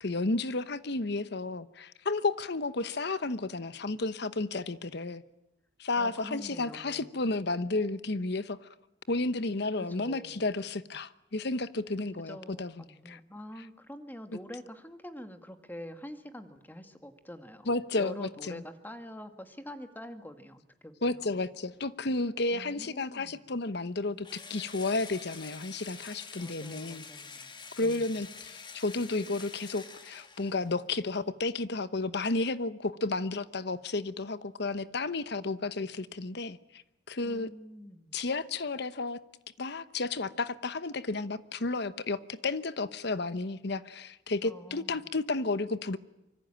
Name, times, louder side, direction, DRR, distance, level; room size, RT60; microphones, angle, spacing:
voice 1, 0.0-5.2 5.8-8.7 9.1-12.7 13.0-13.2 17.7-18.6 21.0-27.0 27.8-36.8 37.1-37.5 38.1-39.2 39.6-46.0, left 3 dB, 65° left, 14 dB, 1.0 m, -32 dB
voice 2, 6.0-7.2 9.8-10.5 12.2-21.4 22.5-23.5 26.4-27.5 27.8-28.2 37.2-38.2 44.4-45.1, equal, 10° left, 8 dB, 1.8 m, -46 dB
Engine / Drill, 24.2-30.8, left 5 dB, 25° left, 1.7 m, -47 dB
25.5 x 24.0 x 8.8 m, 0.88 s
head